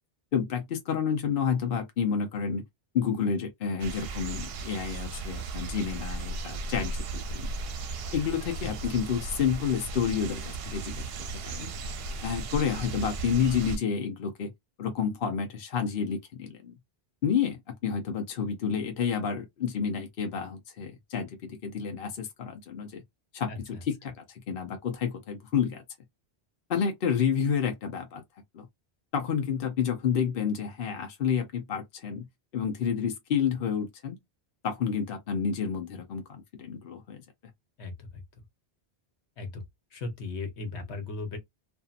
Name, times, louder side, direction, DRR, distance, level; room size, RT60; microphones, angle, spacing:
voice 1, 0.3-2.6 2.9-7.5 8.1-11.1 11.4-11.7 12.2-14.5 14.8-16.7 17.2-23.0 23.3-24.1 24.5-25.8 26.7-28.2 28.5-28.7 29.1-32.3 32.5-34.2 34.6-37.2, left 7 dB, 60° left, 0.9 m, -30 dB
sound 1, 3.8-13.8, right 3 dB, 70° right, 0.8 m, -36 dB
voice 2, 23.5-23.8 37.8-38.2 39.4-39.6 39.9-41.4, left 3 dB, 80° left, 1.2 m, -37 dB
2.7 x 2.5 x 2.4 m
omnidirectional pair, 1.1 m